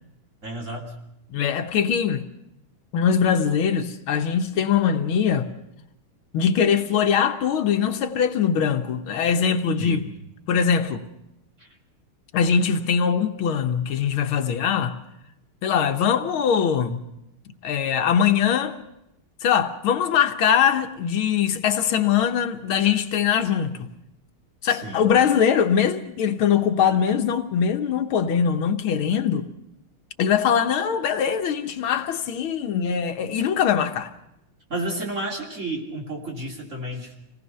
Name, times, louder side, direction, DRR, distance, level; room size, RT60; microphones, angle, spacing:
voice 1, 0.4-0.9 9.8-10.0 11.6-11.7 24.7-25.0 34.7-37.1, right 1 dB, 35° right, 3.3 m, -31 dB
voice 2, 1.3-2.3 2.9-5.5 6.3-10.0 10.5-11.0 12.3-15.0 15.6-17.0 17.6-18.7 19.4-23.8 24.6-29.5 30.2-34.1, left 7 dB, 75° left, 1.8 m, -22 dB
26.5 x 18.5 x 5.5 m
omnidirectional pair, 2.3 m